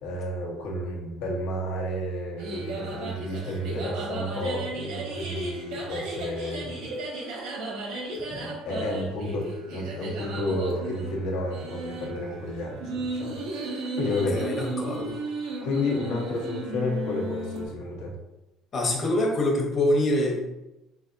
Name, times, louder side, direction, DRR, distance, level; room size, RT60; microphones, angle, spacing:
voice 1, 0.0-6.8 8.1-13.4 13.8-14.4 15.6-18.1, left 1 dB, 85° left, -1 dB, 1.0 m, -31 dB
sound 1, 2.4-17.7, right 2 dB, 85° right, 1.1 m, -35 dB
voice 2, 14.1-15.2 18.7-20.4, left 1 dB, 35° left, 0 dB, 0.9 m, -25 dB
3.8 x 3.4 x 2.6 m, 0.96 s
cardioid pair, 135°, 0 cm